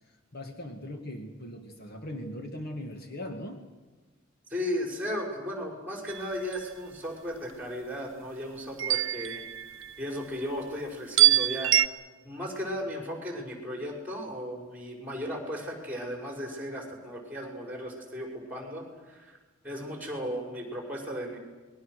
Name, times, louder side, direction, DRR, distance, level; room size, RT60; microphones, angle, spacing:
voice 1, 0.3-3.7, left 1 dB, 50° left, 4 dB, 2.0 m, -39 dB
voice 2, 4.5-9.4 10.0-11.8 12.2-19.4 19.6-21.4, equal, 10° right, 0 dB, 5.6 m, -36 dB
sound 1, 6.1-6.6 8.8-10.2 11.2-11.9, right 13 dB, 65° right, 0.6 m, -24 dB
28.5 x 22.0 x 6.6 m, 1.3 s
head